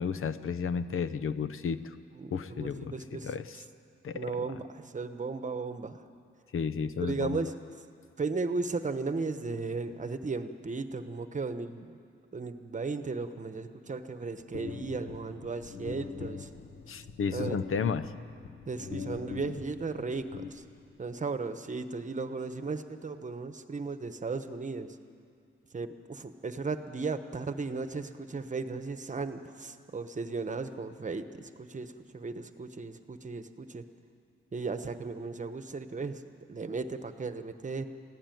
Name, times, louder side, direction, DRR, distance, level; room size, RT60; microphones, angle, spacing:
voice 1, 0.0-1.8 2.3-2.9 3.2-3.6 4.0-4.3 6.5-7.5 16.9-18.1, left 6 dB, 85° left, 13 dB, 0.8 m, -32 dB
voice 2, 2.1-3.3 4.1-6.0 7.0-7.5 8.2-11.9 12.3-16.5 17.3-17.6 18.7-20.6 21.0-25.0 25.7-33.8 34.5-36.2 36.5-37.9, right 4 dB, 35° right, 9 dB, 1.1 m, -36 dB
sound 1, 14.5-21.1, left 6 dB, 65° left, 1.2 m, -42 dB
22.5 x 15.5 x 9.3 m, 2.3 s
wide cardioid pair, 115°, 21 cm